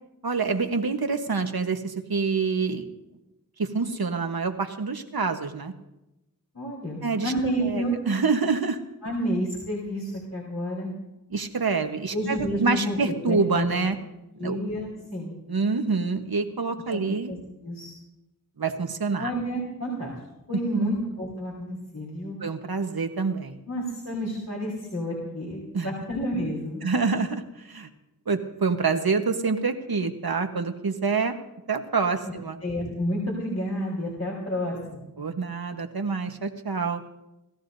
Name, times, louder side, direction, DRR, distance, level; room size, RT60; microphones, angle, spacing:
voice 1, 0.2-2.9 3.6-5.7 7.0-7.3 7.6-8.8 11.3-14.0 14.4-14.6 15.5-17.3 18.6-19.3 20.7-20.9 22.4-23.6 25.7-25.9 26.8-27.9 28.3-31.3 31.7-32.6 35.2-37.0, right 4 dB, 80° right, 6 dB, 1.3 m, -26 dB
voice 2, 6.5-8.0 9.0-11.0 12.1-13.9 14.4-15.4 16.9-17.9 19.2-20.1 20.5-22.4 23.7-26.8 32.2-32.3 32.6-35.1, equal, 45° left, -4 dB, 4.0 m, -30 dB
29.5 x 14.0 x 2.7 m, 0.93 s
wide cardioid pair, 45°, 36 cm